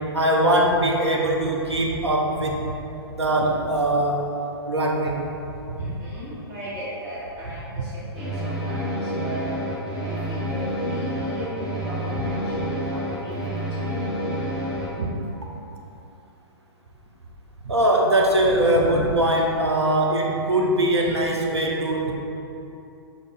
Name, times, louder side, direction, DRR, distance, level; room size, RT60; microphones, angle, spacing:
voice 1, 0.1-2.6 3.1-4.2 4.7-5.2 5.7-5.9 15.0-15.1 15.4-15.5 17.6-22.1, right 1 dB, 85° right, 0 dB, 0.7 m, -21 dB
voice 2, 2.8-3.2 4.6-4.7 5.6-14.3, equal, 30° right, -8 dB, 1.5 m, -37 dB
sound 1, 8.1-14.9, equal, 5° right, 0.6 m, -28 dB
5.1 x 2.6 x 3.6 m, 2.8 s
figure-of-eight pair, 120°, 14 cm